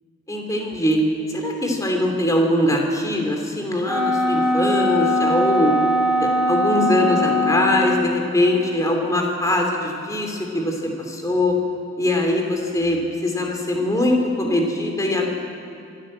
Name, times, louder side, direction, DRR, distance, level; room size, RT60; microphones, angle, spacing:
voice 1, 0.3-1.0 1.3-5.7 6.2-11.5 12.0-15.3, left 1 dB, 15° left, 1 dB, 3.1 m, -22 dB
Wind instrument woodwind instrument, 3.9-8.2, left 1 dB, 10° right, 2.4 m, -21 dB
24.5 x 12.5 x 8.8 m, 2.7 s
head